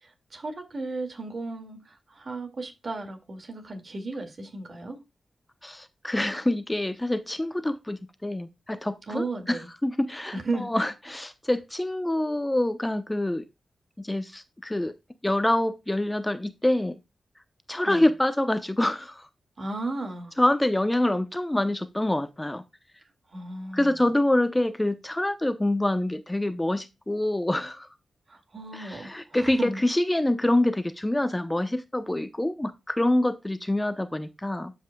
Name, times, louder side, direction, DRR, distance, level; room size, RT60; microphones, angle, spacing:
voice 1, 0.0-5.0 9.1-9.7 10.3-10.9 17.8-18.1 19.6-20.3 23.3-24.1 28.3-29.8, right 2 dB, 55° right, 2.2 m, -35 dB
voice 2, 5.6-13.4 14.0-14.9 15.2-17.0 17.7-19.3 20.4-22.6 23.7-27.9 28.7-34.7, left 1 dB, 15° left, 0.8 m, -26 dB
12.0 x 5.5 x 2.3 m
cardioid pair, 55°, 0 cm